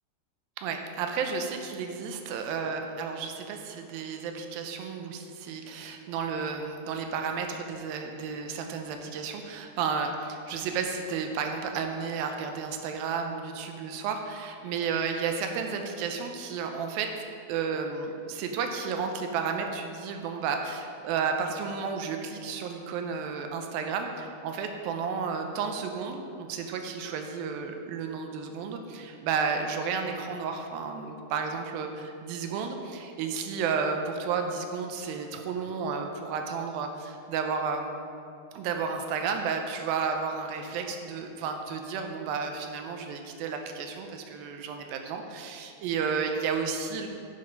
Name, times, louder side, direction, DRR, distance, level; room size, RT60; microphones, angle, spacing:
voice 1, 0.6-17.1 17.5-38.0 38.5-47.1, right 5 dB, 85° right, 4 dB, 2.4 m, -32 dB
7.8 x 7.3 x 5.2 m, 2.5 s
omnidirectional pair, 4.2 m